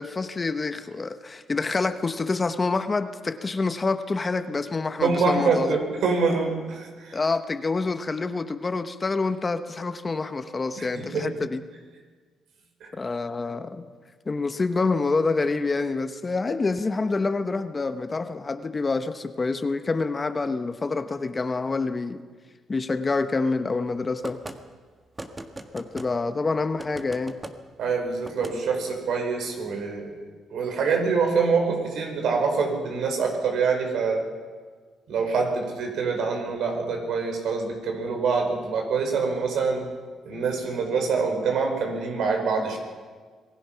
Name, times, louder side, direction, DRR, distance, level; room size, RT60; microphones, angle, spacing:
voice 1, 0.0-5.8 7.1-11.6 12.9-13.9 14.3-22.2 22.7-24.4 25.7-27.4 28.5-28.6, left 3 dB, 30° left, 10 dB, 1.1 m, -27 dB
voice 2, 5.0-7.2 10.8-11.3 12.8-12.9 27.8-30.2 30.5-34.3 35.1-39.9 40.2-42.8, right 4 dB, 75° right, 3 dB, 4.9 m, -25 dB
sound 1, 24.2-24.6 25.2-26.1 26.8-27.5 28.2-28.6, right 2 dB, 20° right, 1.7 m, -38 dB
26.0 x 19.0 x 5.9 m, 1.5 s
cardioid pair, 90°, 0 cm